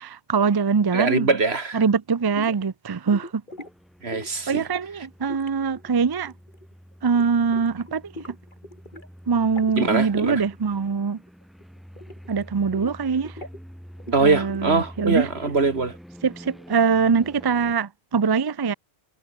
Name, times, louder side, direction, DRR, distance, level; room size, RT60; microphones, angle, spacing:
voice 1, 0.0-1.3 1.7-3.4 4.5-6.3 7.0-8.1 9.3-11.2 12.3-13.3 14.2-15.3 16.2-18.7, right 5 dB, 30° right, 0.4 m, -23 dB
voice 2, 0.9-1.8 4.0-4.6 9.8-10.4 14.1-15.9, right 4 dB, 70° right, 2.6 m, -22 dB
sound 1, 2.3-2.7 3.1-3.7 4.1-4.5 5.3-6.7 7.0-7.3 7.5-9.1 9.3-9.8 10.1-10.3 10.5-11.0 11.3-12.4 12.7-13.6 14.0-15.8, left 1 dB, 50° left, 8.2 m, -41 dB
sound 2, 3.5-17.8, equal, ahead, 6.2 m, -46 dB
omnidirectional pair, 1.1 m